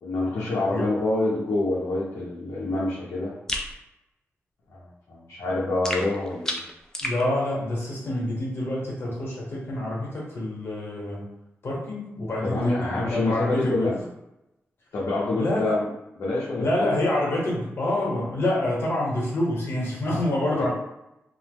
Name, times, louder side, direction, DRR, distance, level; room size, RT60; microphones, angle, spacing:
voice 1, 0.0-3.3 4.7-6.6 12.4-14.0 14.9-15.9 16.2-16.9 20.6-20.7, left 2 dB, 85° left, -6 dB, 0.6 m, -26 dB
sound 1, 3.5-3.7 5.8-7.2, left 1 dB, 10° left, 0.3 m, -30 dB
voice 2, 7.0-11.3 11.6-13.9 15.4-15.8 16.6-20.7, left 1 dB, 55° left, -4 dB, 0.9 m, -27 dB
2.9 x 2.0 x 3.4 m, 0.89 s
wide cardioid pair, 175°, 5 cm